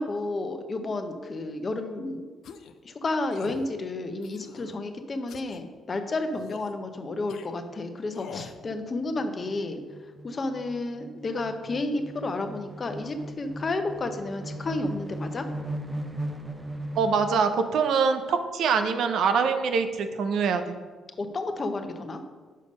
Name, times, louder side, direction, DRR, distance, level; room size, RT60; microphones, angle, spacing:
voice 1, 0.0-2.2 2.8-9.8 10.2-15.5 21.2-22.2, left 2 dB, 35° left, 7 dB, 0.8 m, -31 dB
sound 1, 2.4-2.8 3.3-3.7 4.2-4.7 5.3-5.6 6.4-6.7 7.3-7.5 8.1-8.6, left 7 dB, 75° left, 0.5 m, -44 dB
sound 2, 6.9-7.2 7.6-7.7 8.0-17.6, right 1 dB, 15° right, 0.6 m, -38 dB
voice 2, 17.0-20.6, right 5 dB, 75° right, 8 dB, 0.6 m, -24 dB
6.6 x 5.1 x 5.3 m, 1.4 s
cardioid pair, 90°, 0 cm